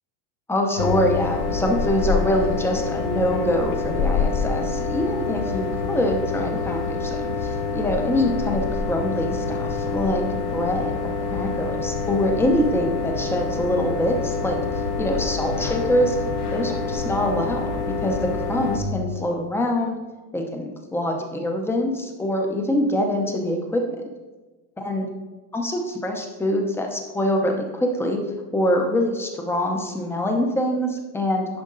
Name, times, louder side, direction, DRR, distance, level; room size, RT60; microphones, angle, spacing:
voice 1, 0.5-16.2 16.5-17.7 18.0-20.0 20.3-24.0 24.8-25.1 25.5-28.2 28.5-31.6, left 1 dB, 5° left, 2 dB, 0.6 m, -24 dB
sound 1, 0.8-18.8, left 4 dB, 85° left, 1.4 m, -26 dB
10.5 x 5.1 x 3.8 m, 1.2 s
supercardioid pair, 160°, 46 cm